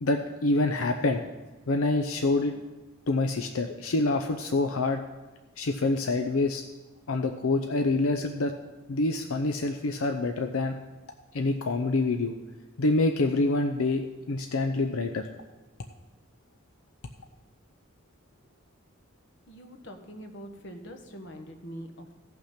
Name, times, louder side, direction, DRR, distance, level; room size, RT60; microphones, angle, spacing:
voice 1, 0.0-1.2 1.7-2.5 3.1-5.0 5.6-6.6 7.1-8.5 8.9-10.8 11.3-12.3 12.8-15.3, left 2 dB, 85° left, 6 dB, 0.6 m, -26 dB
voice 2, 19.5-22.1, equal, 60° left, 5 dB, 1.3 m, -43 dB
15.5 x 5.9 x 5.8 m, 1.2 s
head